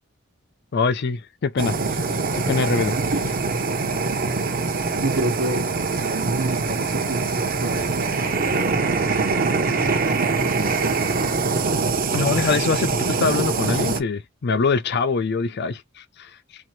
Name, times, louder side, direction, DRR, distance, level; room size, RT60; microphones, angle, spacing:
voice 1, 0.7-2.0 2.3-2.9 12.1-16.3, left 4 dB, 55° left, 0.5 m, -24 dB
Fire, 1.6-14.0, right 4 dB, 45° right, 0.8 m, -23 dB
voice 2, 4.7-5.7 6.0-7.3 7.6-8.8 9.3-11.1, right 2 dB, 85° right, 1.1 m, -30 dB
4.5 x 2.5 x 2.8 m
head